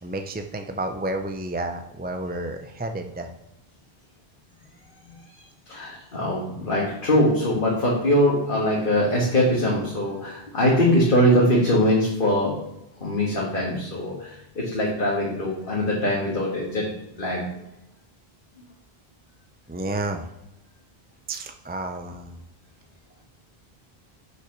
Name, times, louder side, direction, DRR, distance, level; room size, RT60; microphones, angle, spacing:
voice 1, 0.0-3.3 19.7-20.3 21.3-22.4, right 2 dB, 15° right, 5 dB, 0.3 m, -31 dB
voice 2, 5.7-12.5 13.0-16.9 17.2-17.4, equal, 55° left, -5 dB, 1.9 m, -22 dB
6.5 x 5.9 x 6.0 m, 0.89 s
omnidirectional pair, 1.1 m